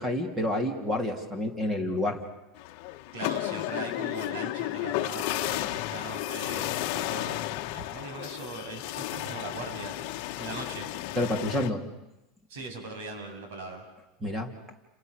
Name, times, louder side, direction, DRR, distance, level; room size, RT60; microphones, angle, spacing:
voice 1, 0.0-2.2 11.1-11.9 14.2-14.5, left 1 dB, 10° right, 5 dB, 3.3 m, -29 dB
sound 1, 2.6-11.7, left 16 dB, 55° left, 1.2 m, -33 dB
voice 2, 3.1-7.4 7.7-10.9 12.5-13.8, right 3 dB, 85° right, 4 dB, 7.8 m, -40 dB
30.0 x 27.0 x 6.8 m, 0.96 s
supercardioid pair, 165°, 0 cm